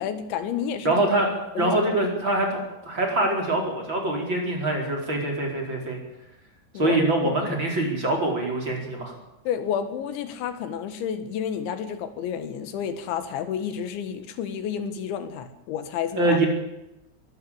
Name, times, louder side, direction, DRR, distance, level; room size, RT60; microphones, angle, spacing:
voice 1, 0.0-1.0 1.6-1.8 6.7-7.6 9.5-16.4, left 8 dB, 85° left, 10 dB, 4.0 m, -30 dB
voice 2, 0.8-2.6 2.8-6.0 6.7-9.1 16.2-16.5, right 2 dB, 25° right, 0 dB, 4.8 m, -24 dB
22.5 x 14.0 x 8.8 m, 0.92 s
omnidirectional pair, 5.2 m